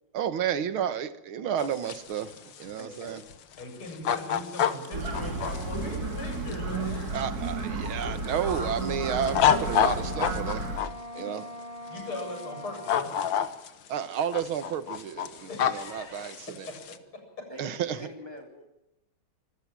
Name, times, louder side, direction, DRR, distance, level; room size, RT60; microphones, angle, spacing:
voice 1, 0.1-3.2 7.1-10.7 11.1-11.5 13.9-16.7 17.6-18.0, right 8 dB, 75° right, 2.0 m, -31 dB
sound 1, 1.6-7.6 8.0-10.9 12.0-12.4 12.7-13.9 14.2-17.0, left 9 dB, 65° left, 1.8 m, -28 dB
voice 2, 2.8-3.2 17.5-18.7, equal, 10° right, 3.3 m, -44 dB
voice 3, 3.6-7.2 9.9-10.1 11.1-11.3 11.9-13.1 15.5-17.0, left 2 dB, 85° left, 8.5 m, -40 dB
sound 2, 4.9-10.8, right 2 dB, 45° right, 2.6 m, -32 dB
Wind instrument woodwind instrument, 8.8-13.4, equal, 30° left, 1.4 m, -42 dB
26.0 x 14.5 x 7.4 m
omnidirectional pair, 2.3 m